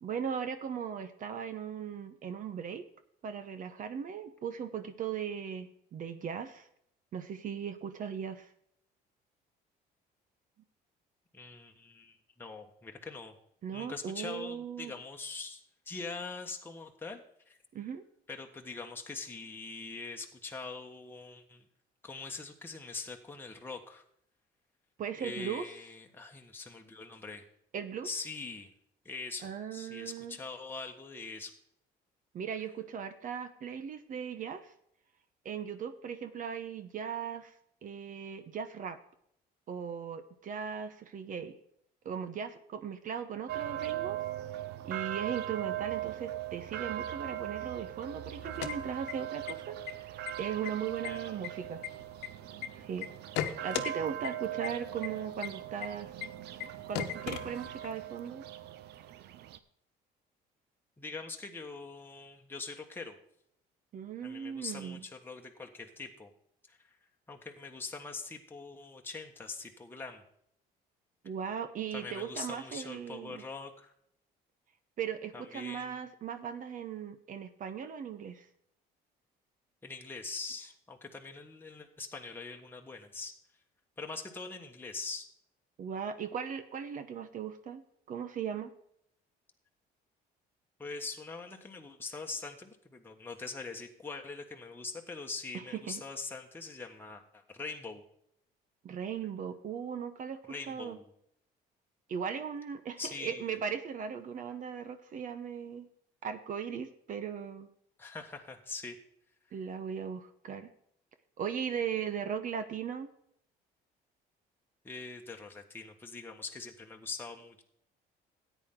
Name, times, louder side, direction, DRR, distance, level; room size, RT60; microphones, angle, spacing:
voice 1, 0.0-2.9 3.2-6.7 7.1-8.5 13.6-14.9 17.7-18.0 25.0-25.7 27.7-28.1 29.4-30.4 32.3-34.7 35.4-37.5 37.8-39.0 39.7-41.5 42.0-44.2 44.9-49.8 50.1-51.8 52.8-53.1 53.6-56.1 56.9-58.4 63.9-65.0 71.2-73.4 75.0-78.5 85.8-87.8 88.1-88.7 95.5-96.0 98.8-100.4 100.7-101.0 102.1-105.9 106.2-107.7 109.5-110.7 111.4-113.1, right 7 dB, 50° right, 10 dB, 1.0 m, -38 dB
voice 2, 11.3-13.3 13.7-17.6 18.3-21.6 22.0-24.0 25.2-27.4 28.0-28.7 29.0-31.5 51.1-51.3 61.0-63.2 64.2-66.3 66.7-66.8 67.3-70.2 71.9-73.9 75.3-75.9 79.8-83.3 84.0-85.3 90.8-98.0 100.5-101.1 103.0-103.5 108.0-109.0 114.8-117.6, left 4 dB, 10° left, 2 dB, 1.3 m, -43 dB
sound 1, 43.5-59.6, right 12 dB, 75° right, 0.8 m, -40 dB
sound 2, 48.4-49.5 49.8-49.9 50.3-50.7 51.0-52.7 53.0-53.9 54.2-54.3 54.6-54.7 55.0-55.1 55.4-55.5 55.8-55.9 56.2-56.3 56.6-56.7 56.9-58.0, left 11 dB, 90° left, 1.1 m, -36 dB
13.5 x 9.2 x 3.8 m, 0.71 s
cardioid pair, 110°, 17 cm